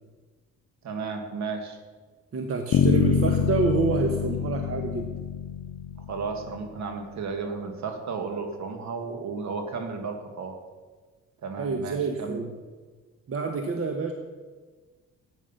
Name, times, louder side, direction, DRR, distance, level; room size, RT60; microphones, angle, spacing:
voice 1, 0.8-1.8 6.1-10.6 11.4-12.4, right 4 dB, 65° right, 5 dB, 2.0 m, -33 dB
voice 2, 2.3-5.1 11.6-12.5 13.3-14.1, right 4 dB, 50° right, 5 dB, 1.3 m, -27 dB
Bass guitar, 2.7-6.7, left 8 dB, 60° left, 0.7 m, -26 dB
13.5 x 9.3 x 5.8 m, 1.4 s
cardioid pair, 90°, 30 cm